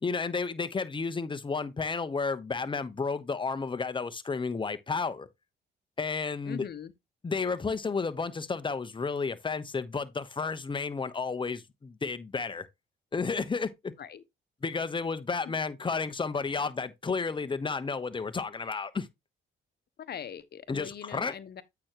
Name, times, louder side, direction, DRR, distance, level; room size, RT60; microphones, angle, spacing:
voice 1, 0.0-5.3 6.0-6.7 7.2-12.7 13.1-13.9 14.6-19.1 20.7-21.3, left 4 dB, 25° left, 0.9 m, -32 dB
voice 2, 6.4-6.9 14.0-14.2 15.4-15.6 20.0-21.6, left 9 dB, 55° left, 1.0 m, -41 dB
8.7 x 5.8 x 3.0 m
cardioid pair, 90°, 20 cm